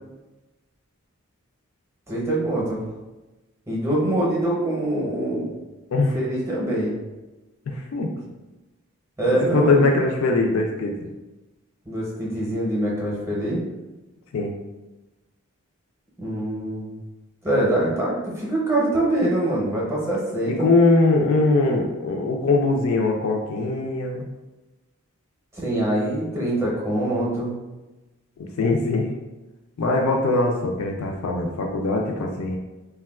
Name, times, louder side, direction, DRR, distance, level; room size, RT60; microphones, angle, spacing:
voice 1, 2.1-2.8 3.7-5.5 6.1-7.0 9.2-9.8 11.9-13.6 16.2-17.0 17.4-20.7 25.5-27.6, right 1 dB, 10° right, -4 dB, 0.6 m, -24 dB
voice 2, 7.7-8.1 9.3-11.1 14.3-14.5 20.5-24.3 28.4-29.1 29.8-32.6, left 3 dB, 65° left, 1 dB, 0.3 m, -21 dB
3.5 x 2.2 x 2.3 m, 1.1 s
head